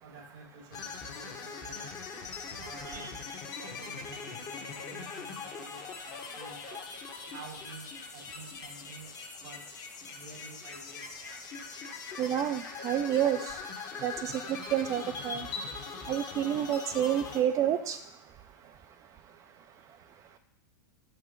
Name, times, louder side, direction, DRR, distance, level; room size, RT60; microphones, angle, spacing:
voice 1, 0.0-1.9 2.6-3.2 3.6-6.9 7.3-7.9 8.1-9.1 9.4-9.6 10.1-11.4, right 4 dB, 70° right, 3 dB, 1.2 m, -50 dB
sound 1, 0.7-17.4, left 5 dB, 35° left, 1.1 m, -41 dB
voice 2, 12.2-13.6 14.0-14.3 14.7-15.5 16.1-18.0, right 10 dB, 30° right, 8 dB, 0.3 m, -29 dB
5.5 x 4.6 x 5.2 m, 0.77 s
hypercardioid pair, 100°, 11 cm